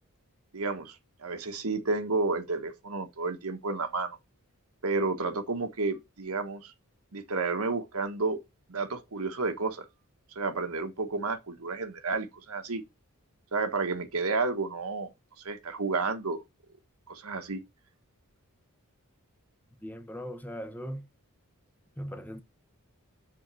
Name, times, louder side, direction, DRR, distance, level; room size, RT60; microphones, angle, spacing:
voice 1, 0.5-4.2 4.8-6.7 7.1-8.4 8.7-9.8 10.3-12.8 13.5-15.1 15.4-16.4 17.1-17.6, right 3 dB, 75° right, 1.4 m, -31 dB
voice 2, 19.8-21.1 22.0-22.4, equal, 10° left, 0.9 m, -39 dB
7.1 x 4.0 x 6.2 m
head